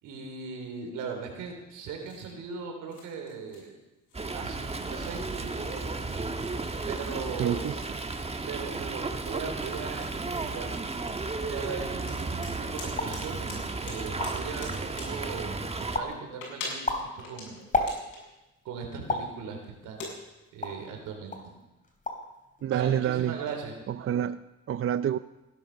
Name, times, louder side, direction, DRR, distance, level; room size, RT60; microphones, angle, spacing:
voice 1, 0.0-3.7 4.3-6.0 6.9-7.7 8.5-10.8 11.5-16.9 17.1-17.6 18.6-20.1 20.5-21.4 22.7-23.7, right 5 dB, 90° right, 3 dB, 3.8 m, -39 dB
sound 1, 1.8-2.3 2.9-3.8 4.1-4.7 5.0-5.2 5.5-8.2 8.6-8.7 9.2-9.3 9.6-11.4 12.1-13.2 13.5-13.6 13.9-15.1 16.0-18.3 18.9-19.2 19.6-20.1, left 3 dB, 80° left, 7.2 m, -43 dB
Fowl, 4.1-16.0, right 3 dB, 20° right, 1.3 m, -34 dB
voice 2, 7.4-7.8 22.6-23.5 23.9-25.2, right 10 dB, 45° right, 14 dB, 0.5 m, -28 dB
sound 2, 13.0-13.2 13.8-13.9 14.0-14.6 15.0-15.5 15.9-16.2 16.6-18.3 19.1-19.4 20.0-20.9 21.3-21.5 21.8-22.3 22.6-23.1, left 2 dB, 25° left, 3.3 m, -32 dB
17.5 x 12.0 x 6.6 m, 1.0 s
cardioid pair, 90°, 30 cm